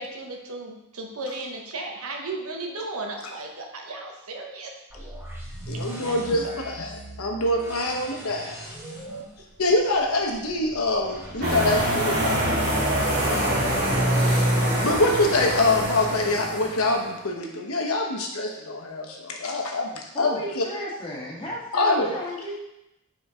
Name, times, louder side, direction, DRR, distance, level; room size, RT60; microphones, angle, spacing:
voice 1, 0.0-4.7 5.7-6.6, right 2 dB, 80° right, 2 dB, 1.1 m, -35 dB
sound 1, 4.9-12.8, right 1 dB, 10° right, 1.4 m, -41 dB
voice 2, 5.7-6.9 7.2-8.6 9.6-12.6 14.2-14.5 14.8-20.6 21.7-22.1, left 2 dB, 80° left, 1 dB, 1.1 m, -25 dB
sound 2, 11.4-16.9, right 1 dB, 50° right, 2.5 m, -24 dB
voice 3, 20.1-22.6, left 1 dB, 25° left, -5 dB, 1.7 m, -35 dB
5.5 x 4.3 x 4.9 m, 0.88 s
head